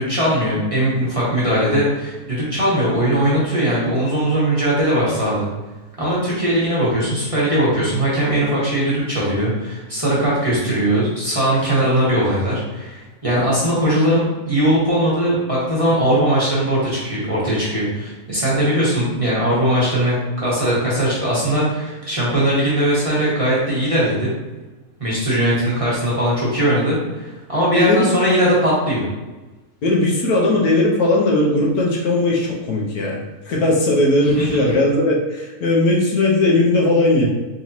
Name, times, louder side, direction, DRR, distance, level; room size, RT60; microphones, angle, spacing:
voice 1, 0.0-5.5 6.0-24.3 25.0-29.1 34.3-34.4, right 1 dB, 25° right, -8 dB, 1.0 m, -19 dB
voice 2, 27.7-28.1 29.8-33.2 33.5-37.3, left 2 dB, 80° left, -3 dB, 1.4 m, -18 dB
4.1 x 3.0 x 2.7 m, 1.2 s
omnidirectional pair, 1.6 m